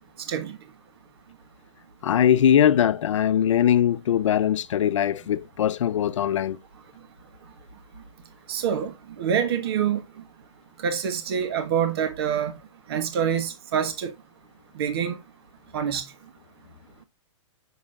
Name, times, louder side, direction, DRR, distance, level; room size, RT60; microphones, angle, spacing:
voice 1, 2.0-6.6, left 9 dB, 70° left, 0.6 m, -21 dB
voice 2, 8.5-8.9 9.2-10.0 10.8-12.5 12.9-14.1 14.8-15.2 15.7-16.0, right 8 dB, 50° right, 1.3 m, -25 dB
7.3 x 6.2 x 2.4 m
hypercardioid pair, 160°, 17 cm